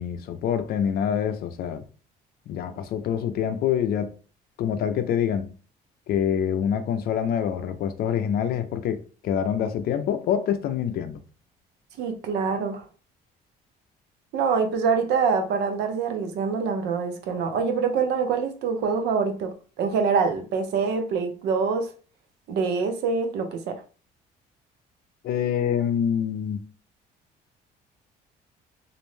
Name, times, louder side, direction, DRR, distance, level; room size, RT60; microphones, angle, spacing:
voice 1, 0.0-1.8 2.5-4.1 4.6-5.5 6.1-11.2 25.2-26.6, left 8 dB, 65° left, 0.5 m, -26 dB
voice 2, 12.0-12.8 14.3-21.9 22.5-23.8, right 5 dB, 80° right, 0.6 m, -25 dB
2.5 x 2.0 x 3.1 m
cardioid pair, 110°, 17 cm